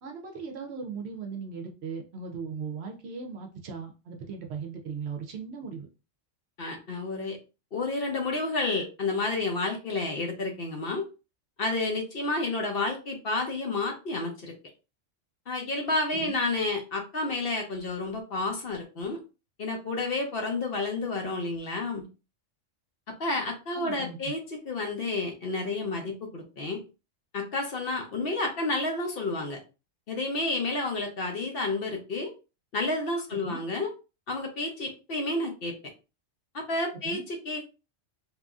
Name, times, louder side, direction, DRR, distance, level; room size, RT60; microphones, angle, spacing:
voice 1, 0.0-5.9 16.2-16.4 23.7-24.3 33.4-33.6 37.0-37.2, right 5 dB, 65° right, 3 dB, 0.8 m, -38 dB
voice 2, 6.6-7.4 7.7-11.0 11.6-14.5 15.5-19.2 19.6-22.0 23.2-24.4 24.6-26.8 27.3-29.6 30.1-32.3 32.7-33.9 34.3-35.7 36.5-37.7, left 2 dB, 55° left, 2 dB, 0.8 m, -30 dB
2.9 x 2.5 x 2.3 m, 0.30 s
omnidirectional pair, 1.3 m